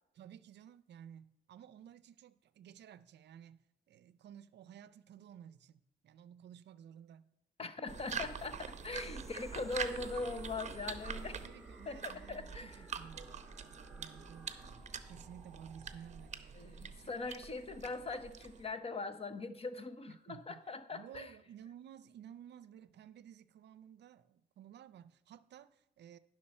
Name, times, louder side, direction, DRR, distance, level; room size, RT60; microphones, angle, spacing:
voice 1, 0.1-7.3 7.6-7.7 11.2-17.1 20.1-20.6 20.9-26.2, right 9 dB, 60° right, 0.5 m, -55 dB
voice 2, 7.6-11.4 11.9-12.8 16.5-21.3, left 3 dB, 30° left, 0.8 m, -41 dB
sound 1, 7.9-18.7, right 6 dB, 35° right, 0.8 m, -45 dB
sound 2, 8.9-16.4, right 1 dB, ahead, 1.3 m, -55 dB
11.0 x 6.2 x 4.3 m
cardioid pair, 90°, 20 cm